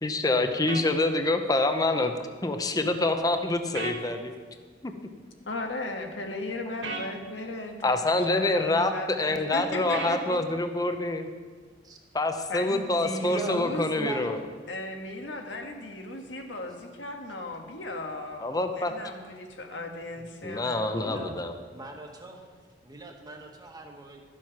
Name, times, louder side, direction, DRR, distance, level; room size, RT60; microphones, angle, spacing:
voice 1, 0.0-2.1 2.4-4.3 4.8-4.9 7.8-11.3 12.1-14.4 18.4-18.9 20.4-21.5, left 2 dB, 20° left, 7 dB, 0.7 m, -26 dB
sound 1, 0.7-0.9 3.7-4.0 6.8-7.1 9.9-10.2, right 3 dB, 90° right, 1.7 m, -34 dB
voice 2, 5.5-10.4 12.5-13.9 14.7-18.5 18.7-20.9, left 2 dB, 80° left, 3 dB, 1.5 m, -36 dB
voice 3, 13.2-13.6 14.0-14.4 21.0-21.3 21.7-22.4 22.8-24.2, right 1 dB, 20° right, 1 dB, 1.4 m, -39 dB
12.5 x 7.5 x 5.8 m, 1.5 s
head